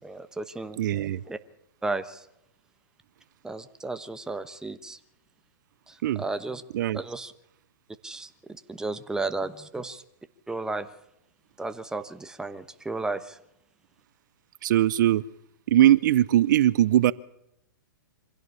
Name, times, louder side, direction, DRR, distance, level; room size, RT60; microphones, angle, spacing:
voice 1, 0.0-0.8 1.3-1.4 1.8-2.3 3.4-5.0 5.9-6.6 6.9-7.3 8.0-10.0 10.5-10.9 11.6-13.4, right 3 dB, 5° right, 10 dB, 1.1 m, -33 dB
voice 2, 0.8-1.2 6.0-6.2 6.7-7.0 14.6-15.2 15.7-17.1, right 12 dB, 60° right, 19 dB, 0.7 m, -20 dB
25.0 x 16.5 x 7.0 m, 0.81 s
hypercardioid pair, 130°, 12 cm